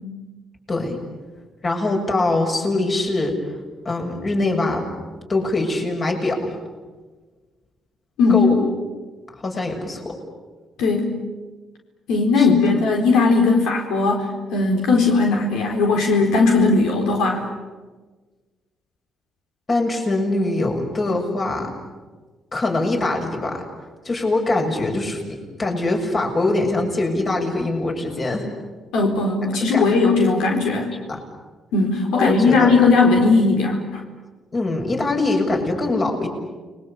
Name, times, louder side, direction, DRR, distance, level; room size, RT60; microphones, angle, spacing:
voice 1, 1.6-3.3 3.9-4.9 5.3-6.5 8.3-8.6 9.4-10.2 12.4-12.5 19.7-21.7 22.5-23.6 24.1-28.5 29.7-29.8 31.1-31.2 32.1-32.7 34.5-36.3, left 2 dB, 40° left, 2 dB, 6.9 m, -23 dB
voice 2, 10.8-11.1 12.1-17.5 28.9-30.9 31.7-34.0, left 3 dB, 90° left, 1 dB, 4.3 m, -18 dB
30.0 x 22.5 x 8.6 m, 1.3 s
cardioid pair, 90°, 0 cm